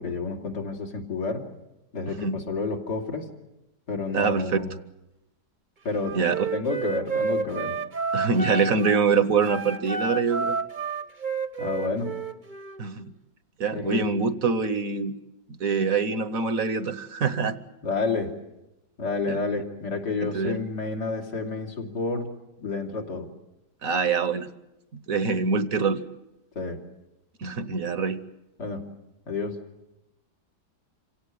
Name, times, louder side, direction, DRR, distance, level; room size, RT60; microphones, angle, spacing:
voice 1, 0.0-1.4 1.9-3.3 3.9-4.8 5.8-6.2 6.5-7.8 11.6-12.1 13.7-14.0 17.8-18.3 19.0-22.3 22.6-23.3 26.6-26.8 28.6-28.9 29.3-29.6, left 3 dB, 75° left, 2 dB, 3.4 m, -30 dB
voice 2, 4.1-4.6 6.1-6.5 8.1-10.6 12.8-13.0 13.6-15.1 15.6-17.6 19.3-19.4 20.2-20.6 23.8-24.5 25.1-26.0 27.4-28.2, right 5 dB, 55° right, 13 dB, 1.4 m, -24 dB
Wind instrument woodwind instrument, 6.0-9.0 9.4-12.8, right 4 dB, 30° right, 1.1 m, -30 dB
27.5 x 17.0 x 9.8 m, 0.94 s
omnidirectional pair, 1.8 m